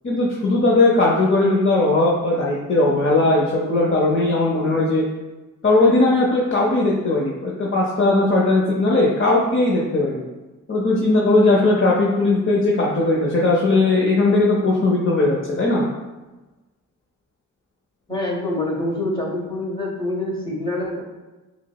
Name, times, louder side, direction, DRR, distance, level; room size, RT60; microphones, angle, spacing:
voice 1, 0.0-5.0 5.6-10.2 10.7-15.8, left 2 dB, 35° left, -4 dB, 0.7 m, -18 dB
voice 2, 18.1-21.0, left 1 dB, 15° left, -3 dB, 1.4 m, -26 dB
5.8 x 2.1 x 2.3 m, 1.1 s
supercardioid pair, 40°, 35 cm